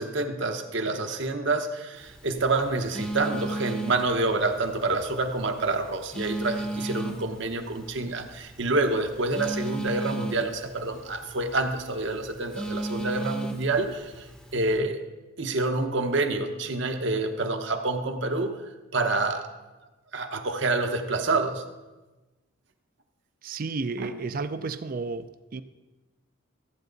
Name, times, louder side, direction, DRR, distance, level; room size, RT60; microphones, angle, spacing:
voice 1, 0.0-14.3 14.5-15.0 15.4-18.6 18.9-19.5 20.1-21.6 24.0-24.1, right 2 dB, 60° right, 0.9 m, -27 dB
Telephone, 1.9-14.8, right 2 dB, 5° left, 0.8 m, -36 dB
voice 2, 23.4-25.6, right 4 dB, 45° right, 0.4 m, -32 dB
14.5 x 8.7 x 3.9 m
head